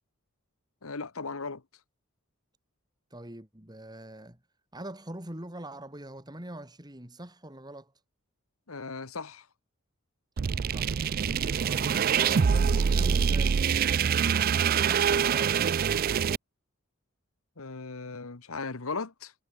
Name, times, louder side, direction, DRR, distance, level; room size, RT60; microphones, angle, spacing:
voice 1, 0.8-1.6 8.7-9.5 17.6-19.3, left 4 dB, 90° left, 1.4 m, -37 dB
voice 2, 3.1-4.4 4.7-7.9 10.7-11.0 11.7-13.6 14.6-15.7, right 1 dB, 20° right, 3.4 m, -42 dB
sound 1, 10.4-16.4, right 7 dB, 45° right, 0.4 m, -25 dB
head